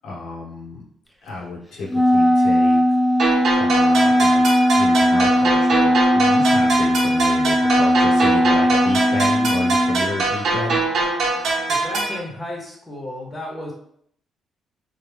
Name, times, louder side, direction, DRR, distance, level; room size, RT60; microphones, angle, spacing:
voice 1, 0.0-0.8 1.2-2.8 3.5-4.4 4.7-10.8, left 2 dB, 80° left, -5 dB, 0.9 m, -31 dB
Wind instrument woodwind instrument, 1.9-10.0, equal, 5° left, 0.5 m, -18 dB
sound 1, 3.2-12.2, right 3 dB, 65° right, 0.9 m, -22 dB
voice 2, 11.7-13.7, left 1 dB, 25° left, -3 dB, 0.9 m, -33 dB
3.3 x 2.3 x 3.4 m, 0.66 s
cardioid pair, 90°, 0 cm